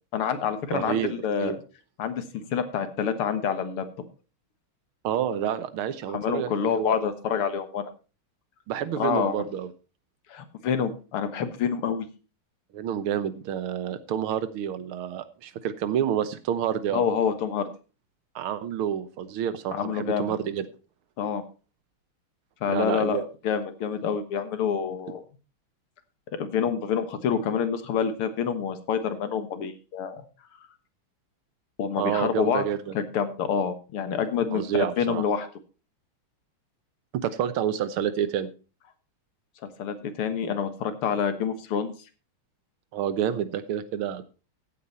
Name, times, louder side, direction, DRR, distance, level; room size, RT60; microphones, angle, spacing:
voice 1, 0.1-1.6 2.0-2.2 2.5-3.9 6.1-7.9 9.0-9.5 10.3-12.1 16.9-17.7 19.7-20.3 21.2-21.4 22.6-25.3 26.3-30.2 31.8-32.6 32.9-35.5 39.8-41.9, left 7 dB, 85° left, 10 dB, 2.3 m, -27 dB
voice 2, 0.7-1.1 1.4-1.5 5.0-7.0 8.7-9.7 12.7-17.0 18.3-20.7 22.7-23.3 32.0-32.9 34.5-35.2 37.1-38.5 42.9-44.2, right 9 dB, 80° right, 13 dB, 1.8 m, -28 dB
15.0 x 8.4 x 4.2 m, 0.33 s
omnidirectional pair, 2.4 m